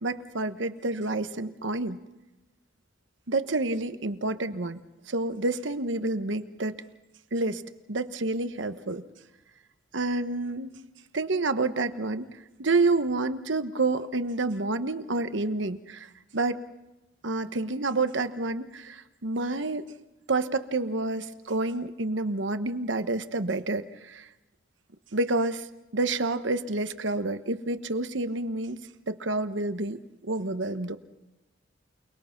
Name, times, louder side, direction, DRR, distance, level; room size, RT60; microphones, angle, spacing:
voice 1, 0.0-2.0 3.3-4.8 5.1-6.7 7.3-7.6 7.9-9.0 9.9-10.8 11.1-12.3 12.6-16.6 17.2-19.8 20.3-24.3 25.1-25.7 25.9-28.8 29.1-30.0 30.2-31.0, right 2 dB, 75° right, 11 dB, 1.2 m, -28 dB
28.5 x 20.5 x 6.0 m, 1.0 s
head